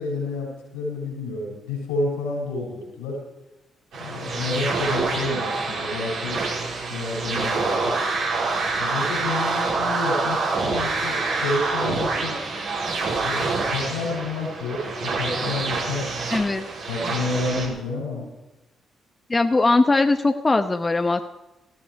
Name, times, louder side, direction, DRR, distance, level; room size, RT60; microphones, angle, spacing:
voice 1, 0.0-3.2 3.9-6.4 6.9-8.0 8.8-12.4 13.2-16.2 16.9-18.2, left 3 dB, 85° left, -1 dB, 6.3 m, -29 dB
sound 1, 3.9-17.7, right 3 dB, 70° right, 5.2 m, -26 dB
voice 2, 16.3-16.6 19.3-21.2, left 3 dB, 30° left, 7 dB, 1.1 m, -20 dB
18.5 x 15.0 x 4.8 m, 1.0 s
hypercardioid pair, 45°, 0 cm